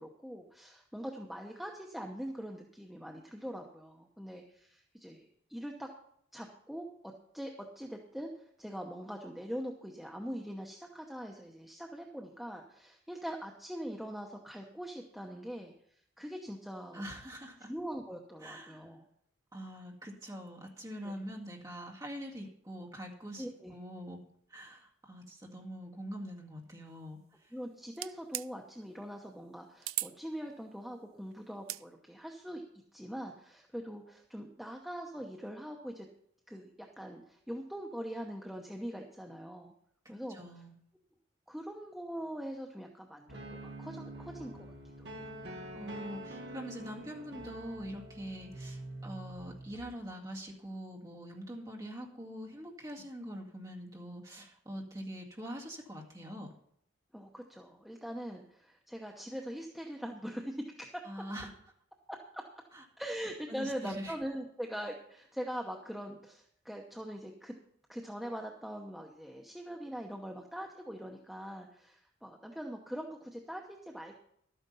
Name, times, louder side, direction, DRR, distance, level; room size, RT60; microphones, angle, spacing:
voice 1, 0.0-5.9 6.3-17.0 17.7-19.0 21.0-21.1 23.4-23.7 27.5-32.6 32.9-36.1 36.5-39.7 40.1-40.4 41.5-44.7 45.0-45.3 57.1-60.9 62.1-62.4 63.0-67.5 67.9-74.2, equal, ahead, 0 dB, 0.8 m, -42 dB
voice 2, 16.9-17.7 18.4-18.8 19.5-24.2 24.5-27.5 40.0-40.7 45.7-56.5 61.0-61.5 62.7-62.8 63.5-64.1, equal, 15° right, -1 dB, 2.1 m, -44 dB
sound 1, 27.9-28.5 29.8-30.1 31.5-31.8, right 15 dB, 85° right, 0.4 m, -36 dB
sound 2, 43.3-49.9, right 1 dB, 55° right, 1.4 m, -46 dB
12.5 x 9.2 x 5.5 m, 0.70 s
head